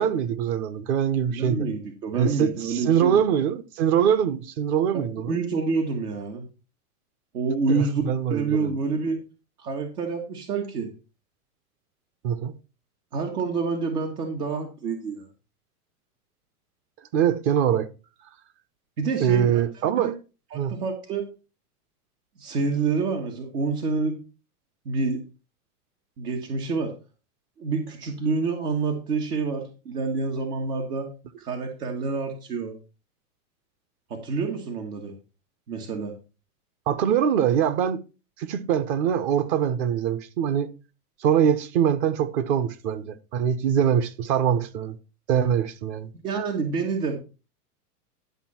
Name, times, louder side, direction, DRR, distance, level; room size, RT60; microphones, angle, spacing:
voice 1, 0.0-1.7 2.1-5.3 7.7-8.7 12.2-12.5 17.1-17.9 19.2-20.1 20.5-20.8 36.9-38.0 38.4-40.7 41.2-45.0 45.3-46.1, right 8 dB, 45° right, 1.0 m, -23 dB
voice 2, 1.3-3.2 4.9-6.4 7.3-8.0 8.3-9.2 9.6-10.9 13.1-15.3 19.0-20.1 20.5-21.2 22.4-24.1 24.9-25.2 26.2-26.9 27.6-31.1 31.4-32.8 34.1-35.1 35.7-36.1 46.1-47.2, right 4 dB, 75° right, 2.2 m, -28 dB
11.5 x 5.5 x 4.4 m
hypercardioid pair, 120°, 47 cm